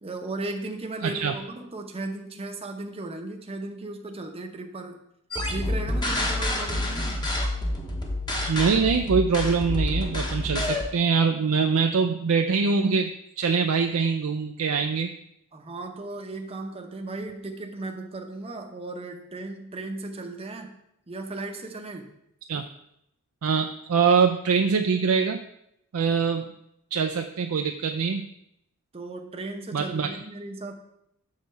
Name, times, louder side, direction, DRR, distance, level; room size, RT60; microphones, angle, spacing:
voice 1, 0.0-5.0 5.5-7.2 15.5-20.8 21.1-22.1 28.9-30.7, right 2 dB, 30° right, 3 dB, 0.7 m, -36 dB
voice 2, 1.0-1.3 8.5-13.1 13.4-15.1 22.5-22.6 23.4-25.4 25.9-26.5 26.9-28.2 29.7-30.2, right 5 dB, 85° right, 5 dB, 0.5 m, -23 dB
sound 1, 5.3-10.9, left 1 dB, 20° left, 1.0 m, -28 dB
6.6 x 4.1 x 6.5 m, 0.78 s
head